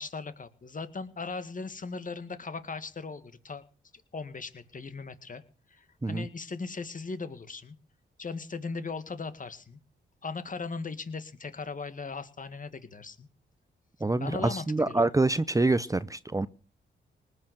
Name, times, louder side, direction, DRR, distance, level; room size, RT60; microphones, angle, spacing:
voice 1, 0.0-3.6 4.1-5.4 5.7-7.8 8.2-9.8 10.2-13.3 14.2-15.1, left 4 dB, 45° left, 2.0 m, -38 dB
voice 2, 14.0-16.5, right 2 dB, 15° right, 0.8 m, -26 dB
19.5 x 6.7 x 7.9 m
supercardioid pair, 55°, 20 cm